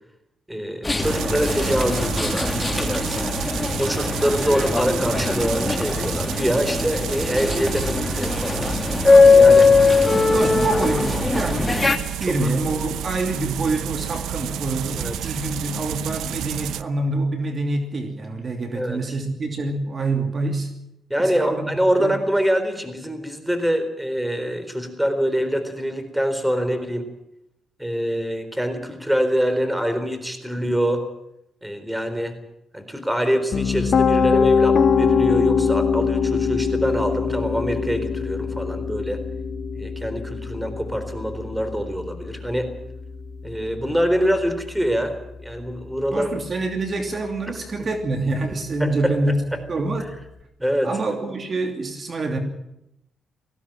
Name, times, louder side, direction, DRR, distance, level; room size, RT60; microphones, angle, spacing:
voice 1, 0.5-3.3 3.8-9.7 10.3-10.5 12.2-12.6 15.0-15.3 18.7-19.2 21.1-27.1 27.8-31.1 31.6-32.4 32.7-39.2 39.8-42.7 43.4-46.3 47.8-47.9 48.8-49.1 49.5-49.6 50.6-50.9, equal, 5° right, 9 dB, 4.0 m, -25 dB
sound 1, 0.8-12.0, left 4 dB, 20° left, 2.4 m, -20 dB
sound 2, 1.0-16.8, right 10 dB, 90° right, 0.8 m, -30 dB
voice 2, 10.3-20.7 21.2-22.2 46.1-49.3 49.7-50.1 50.8-52.4, right 2 dB, 40° right, 5 dB, 2.8 m, -26 dB
Piano, 33.5-45.4, left 6 dB, 55° left, 1.4 m, -23 dB
19.5 x 15.5 x 9.0 m, 0.82 s
cardioid pair, 85°, 0 cm